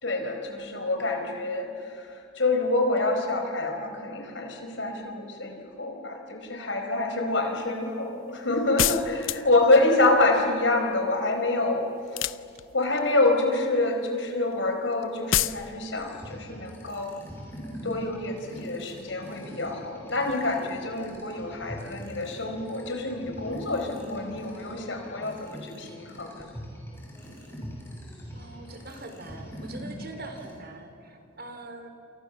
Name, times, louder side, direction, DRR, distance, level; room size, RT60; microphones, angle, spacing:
voice 1, 0.0-11.8 12.1-12.3 12.7-17.1 17.8-26.5, left 2 dB, 65° left, 4 dB, 4.8 m, -27 dB
sound 1, 8.8-9.7 12.1-12.9 15.3-15.6, left 11 dB, 85° left, 0.7 m, -26 dB
sound 2, 16.0-30.5, equal, 10° left, 6.9 m, -43 dB
voice 2, 28.3-31.9, right 2 dB, 50° right, 7 dB, 3.3 m, -43 dB
28.5 x 28.5 x 7.3 m, 2.7 s
head